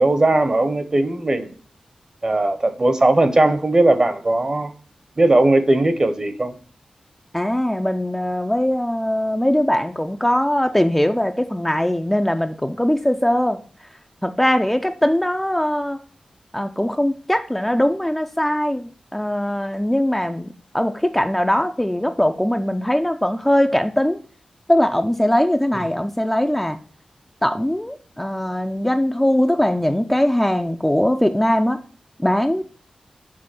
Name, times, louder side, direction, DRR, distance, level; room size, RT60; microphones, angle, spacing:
voice 1, 0.0-1.5 2.2-4.7 5.2-6.5, right 2 dB, 30° right, 0.8 m, -18 dB
voice 2, 7.3-13.6 14.2-16.0 16.5-20.5 20.7-24.2 24.7-26.8 27.4-31.8 32.2-32.6, left 1 dB, 5° left, 0.4 m, -20 dB
7.5 x 3.7 x 5.9 m
wide cardioid pair, 110°, 2 cm